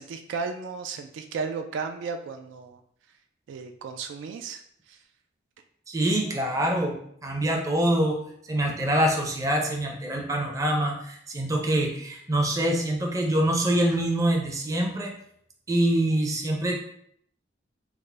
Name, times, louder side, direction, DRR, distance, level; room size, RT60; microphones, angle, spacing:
voice 1, 0.0-2.8 3.5-5.0, right 5 dB, 75° right, 6 dB, 0.3 m, -34 dB
voice 2, 5.9-8.2 8.4-15.1 15.7-16.8, right 1 dB, 20° right, 0 dB, 0.5 m, -25 dB
3.5 x 2.0 x 3.2 m, 0.68 s
head